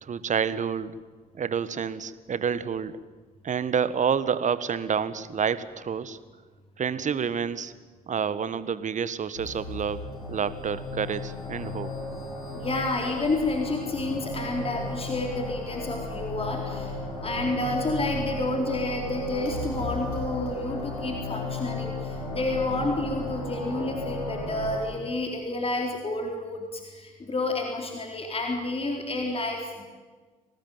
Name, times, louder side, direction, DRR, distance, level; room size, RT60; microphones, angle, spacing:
voice 1, 0.0-0.9 1.3-3.0 3.4-6.2 6.8-7.7 8.1-11.9, right 7 dB, 40° right, 15 dB, 1.5 m, -28 dB
sound 1, 9.4-24.8, left 1 dB, 85° left, 4.7 m, -34 dB
voice 2, 12.5-17.0 17.2-29.8, left 2 dB, 30° left, 2 dB, 4.1 m, -30 dB
24.5 x 19.0 x 9.3 m, 1.4 s
figure-of-eight pair, 45°, 19 cm